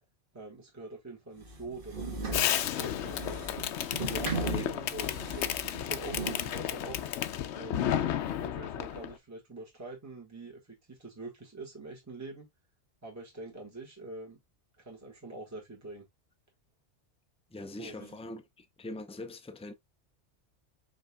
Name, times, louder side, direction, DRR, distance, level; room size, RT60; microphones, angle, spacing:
voice 1, 0.3-3.4 4.1-7.0 7.5-8.0 8.4-12.5 13.0-14.4 14.8-16.1 17.8-18.2, right 2 dB, 15° right, 1.4 m, -45 dB
sound 1, 1.4-6.4, right 3 dB, 50° right, 1.5 m, -37 dB
Fireworks, 2.3-9.1, left 10 dB, 80° left, 0.9 m, -32 dB
voice 2, 4.2-4.7 17.5-19.7, left 2 dB, 10° left, 0.3 m, -42 dB
5.3 x 4.1 x 2.2 m
omnidirectional pair, 1.2 m